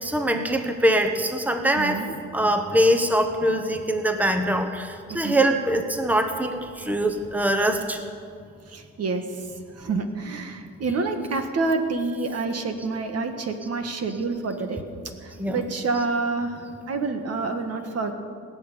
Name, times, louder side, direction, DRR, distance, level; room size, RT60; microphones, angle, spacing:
voice 1, 0.0-2.0 2.3-8.0 15.4-15.6, right 1 dB, 5° right, 6 dB, 1.2 m, -23 dB
voice 2, 1.8-2.1 5.1-5.4 8.7-9.5 9.8-14.8 15.2-18.1, right 3 dB, 55° right, 6 dB, 1.6 m, -28 dB
19.0 x 6.9 x 9.9 m, 2.2 s
cardioid pair, 90°, 30 cm